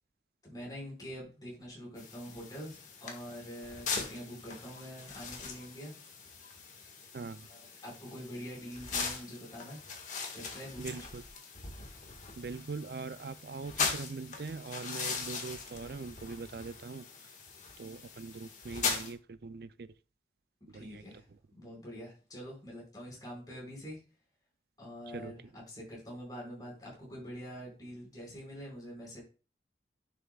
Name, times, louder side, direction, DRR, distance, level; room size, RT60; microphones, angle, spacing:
voice 1, 0.4-5.9 7.5-9.8 10.3-11.1 20.7-21.2 21.6-24.0 24.8-29.2, equal, 20° left, 5.0 m, -45 dB
sound 1, 2.0-19.1, left 5 dB, 45° left, 1.7 m, -40 dB
voice 2, 7.1-7.5 10.8-11.2 12.4-17.1 17.8-19.9 20.7-21.0 21.3-21.4 25.1-25.3, right 4 dB, 60° right, 0.4 m, -42 dB
10.5 x 7.0 x 2.4 m
head